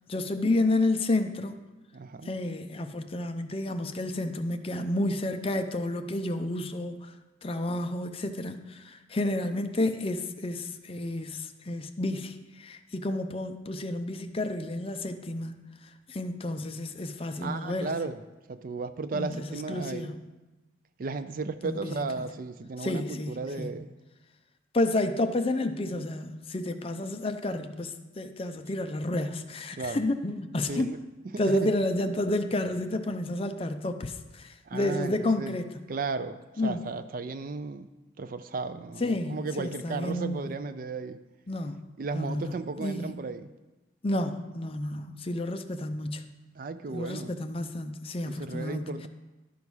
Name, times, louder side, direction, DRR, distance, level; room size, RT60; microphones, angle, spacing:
voice 1, 0.1-1.6 2.2-7.1 7.4-15.7 16.1-17.9 19.1-20.2 21.6-22.1 22.8-23.7 24.7-30.9 31.4-35.7 36.6-36.8 39.0-40.4 41.5-43.2 44.0-46.2 46.9-49.1, left 1 dB, 30° left, 8 dB, 0.5 m, -30 dB
voice 2, 1.9-2.3 17.4-18.2 18.5-20.1 21.0-23.9 29.8-30.0 30.7-31.0 31.3-31.7 34.7-35.5 35.9-37.9 38.2-41.2 42.0-43.5 46.6-47.3 48.3-49.1, right 4 dB, 45° right, 11 dB, 0.4 m, -35 dB
12.0 x 4.7 x 5.5 m, 1.1 s
head